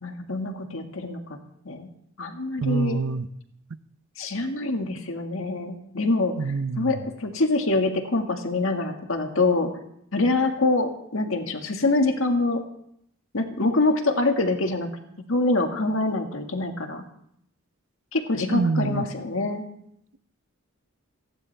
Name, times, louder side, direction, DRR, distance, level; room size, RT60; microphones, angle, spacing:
voice 1, 0.0-1.4 1.6-1.9 2.2-3.0 4.2-9.7 10.1-12.6 13.3-14.9 15.3-17.0 18.1-19.6, left 2 dB, 65° left, 4 dB, 1.8 m, -25 dB
voice 2, 2.6-3.3 6.4-7.0 18.5-19.0, right 4 dB, 65° right, 13 dB, 0.6 m, -26 dB
29.0 x 11.0 x 3.4 m, 0.73 s
head